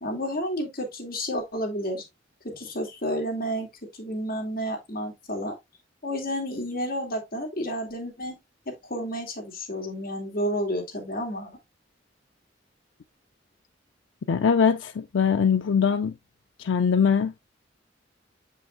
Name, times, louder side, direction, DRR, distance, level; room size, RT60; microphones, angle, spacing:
voice 1, 0.0-2.0 2.4-3.7 4.0-5.5 6.0-8.3 8.9-11.5, equal, 50° left, 2.5 m, -30 dB
voice 2, 14.3-16.1 16.6-17.4, left 6 dB, 80° left, 0.4 m, -22 dB
7.1 x 5.6 x 2.5 m
head